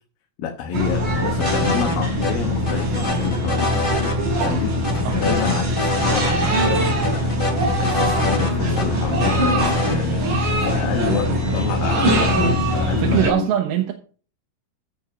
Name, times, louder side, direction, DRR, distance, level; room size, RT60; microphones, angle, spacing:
voice 1, 0.4-3.7 4.4-4.8 5.1-7.4 7.8-10.2 10.6-13.5, left 7 dB, 75° left, 2.8 m, -28 dB
sound 1, 0.7-13.3, equal, 60° right, 6.2 m, -22 dB
sound 2, 1.4-2.0 2.2-2.3 2.7-4.1 4.4-4.5 4.8-6.3 6.6-6.7 7.0-8.9 9.2-10.0, left 2 dB, 15° left, 2.1 m, -25 dB
voice 2, 12.9-13.9, right 11 dB, 90° right, 3.0 m, -22 dB
15.5 x 5.4 x 5.8 m
omnidirectional pair, 4.2 m